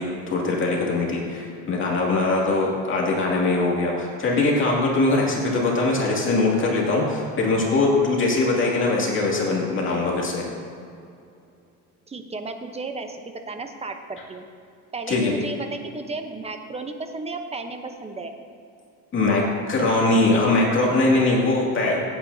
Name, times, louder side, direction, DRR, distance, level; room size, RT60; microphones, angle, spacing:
voice 1, 0.0-10.5 15.1-15.3 19.1-22.1, left 2 dB, 35° left, -3 dB, 2.4 m, -21 dB
voice 2, 12.1-13.2 13.5-14.4 14.9-18.4, right 3 dB, 20° right, 6 dB, 0.9 m, -33 dB
16.5 x 8.8 x 2.8 m, 2.5 s
cardioid pair, 120°, 34 cm